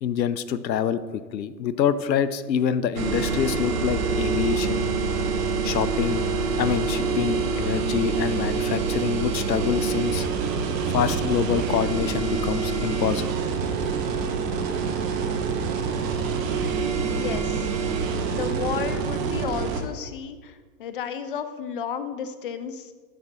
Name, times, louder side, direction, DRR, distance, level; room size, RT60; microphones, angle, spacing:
voice 1, 0.0-4.9 5.6-6.2 6.6-10.3 10.9-13.3, left 9 dB, 85° left, 15 dB, 0.6 m, -26 dB
sound 1, 3.0-19.8, right 5 dB, 50° right, 1.2 m, -26 dB
voice 2, 16.9-17.7 18.3-22.9, left 7 dB, 35° left, 11 dB, 0.4 m, -33 dB
11.0 x 5.7 x 2.8 m, 1.5 s
hypercardioid pair, 115°, 50 cm